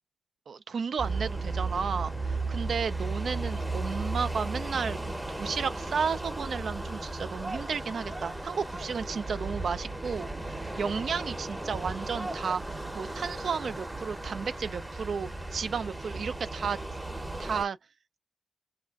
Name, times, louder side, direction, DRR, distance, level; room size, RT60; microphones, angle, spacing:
voice 1, 0.5-10.3 10.8-16.8 17.4-17.8, right 6 dB, 75° right, 0.3 m, -33 dB
sound 1, 1.0-17.6, right 2 dB, 15° right, 0.7 m, -35 dB
4.2 x 2.4 x 2.3 m
cardioid pair, 75°, 0 cm